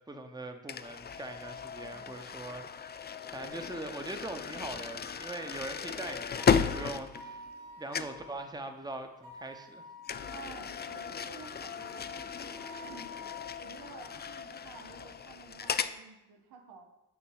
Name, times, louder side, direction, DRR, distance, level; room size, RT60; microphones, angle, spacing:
voice 1, 0.1-7.5 7.8-9.8, right 2 dB, 10° right, 6 dB, 0.8 m, -42 dB
sound 1, 0.7-7.7 7.9-8.3 10.0-16.0, left 7 dB, 30° left, 0.4 m, -35 dB
voice 2, 1.8-2.2 10.3-13.2 13.6-16.9, right 5 dB, 85° right, 3 dB, 0.9 m, -51 dB
sound 2, 6.4-8.5 9.2-10.5 11.8-14.0, left 2 dB, 65° right, 2.2 m, -49 dB
sound 3, 9.9-13.1, left 5 dB, 85° left, 1.5 m, -61 dB
8.4 x 3.0 x 4.7 m, 0.95 s
supercardioid pair, 45°, 36 cm